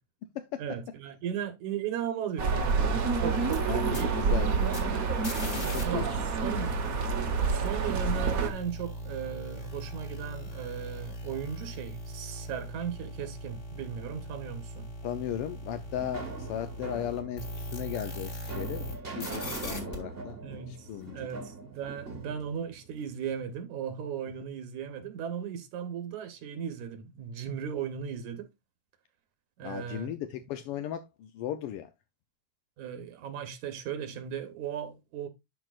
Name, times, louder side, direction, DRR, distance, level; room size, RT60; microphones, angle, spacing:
voice 1, 0.6-4.1 5.5-6.1 6.4-6.7 7.5-14.9 20.4-28.5 29.6-30.1 32.8-35.3, right 8 dB, 85° right, 2.6 m, -37 dB
sound 1, 2.4-8.5, right 4 dB, 55° right, 0.9 m, -28 dB
sound 2, 3.4-5.8 6.1-18.9 19.2-20.0, equal, 30° left, 1.8 m, -40 dB
voice 2, 3.7-5.0 5.4-6.3 15.0-21.3 29.6-31.9, left 11 dB, 75° left, 1.3 m, -37 dB
sound 3, 15.3-23.4, right 3 dB, 30° right, 1.1 m, -42 dB
12.0 x 4.8 x 2.4 m
omnidirectional pair, 3.3 m